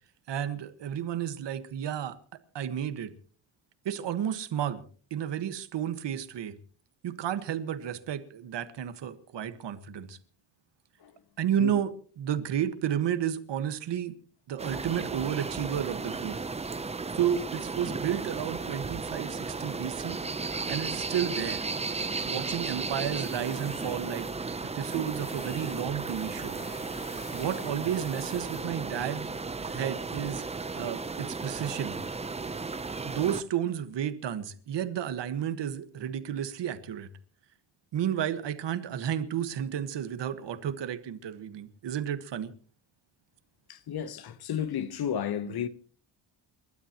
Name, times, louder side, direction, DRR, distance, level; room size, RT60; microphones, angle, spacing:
voice 1, 0.3-2.2 2.5-3.1 3.8-4.8 5.1-6.5 7.0-10.2 11.4-14.1 14.5-16.4 17.1-20.2 20.7-21.6 22.3-24.3 24.7-26.6 27.3-29.3 29.6-30.4 30.7-32.0 33.0-37.1 37.9-42.5 45.4-45.6, right 9 dB, 60° right, 1.6 m, -32 dB
sound 1, 14.6-33.4, right 4 dB, 15° right, 0.6 m, -35 dB
Tools, 23.2-29.7, left 2 dB, 20° left, 2.8 m, -49 dB
voice 2, 43.7-45.7, left 9 dB, 50° left, 1.1 m, -32 dB
29.0 x 12.5 x 3.0 m
cardioid pair, 165°, 48 cm